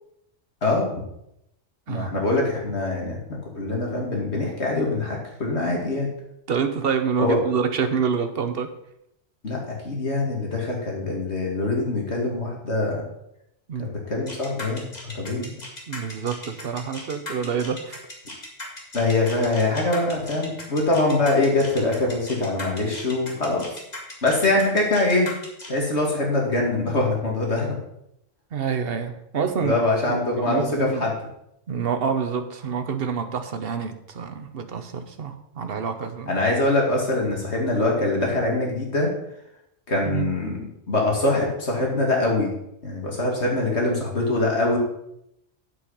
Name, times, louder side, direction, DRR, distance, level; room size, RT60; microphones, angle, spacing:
voice 1, 0.6-1.0 1.9-3.2 3.5-6.1 7.2-7.4 9.4-13.0 13.8-15.5 18.9-23.7 24.2-25.3 25.7-27.8 29.6-31.1 36.3-39.1 39.9-42.5 42.8-44.8, left 2 dB, 65° left, -1 dB, 2.6 m, -23 dB
voice 2, 1.9-2.2 6.5-8.7 13.7-13.9 15.2-15.6 15.9-18.0 28.5-29.7 30.1-31.0 31.7-36.4 40.0-40.3, right 6 dB, 55° right, 8 dB, 1.1 m, -27 dB
sound 1, 14.3-25.8, left 2 dB, 35° left, 2.1 m, -37 dB
8.2 x 7.6 x 5.6 m, 0.79 s
omnidirectional pair, 1.2 m